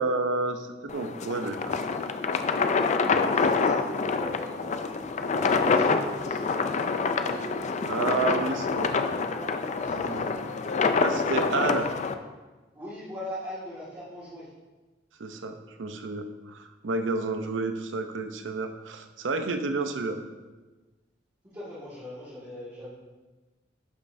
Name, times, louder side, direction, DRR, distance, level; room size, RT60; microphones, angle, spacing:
voice 1, 0.0-1.7 7.8-8.9 9.9-10.4 11.0-11.9 15.2-20.2, right 3 dB, 85° right, 7 dB, 0.6 m, -30 dB
sound 1, 0.9-12.1, left 4 dB, 40° left, 0.4 m, -26 dB
voice 2, 3.0-10.3 12.7-14.5 21.5-22.9, equal, 20° right, -13 dB, 1.9 m, -42 dB
11.5 x 5.4 x 2.6 m, 1.2 s
head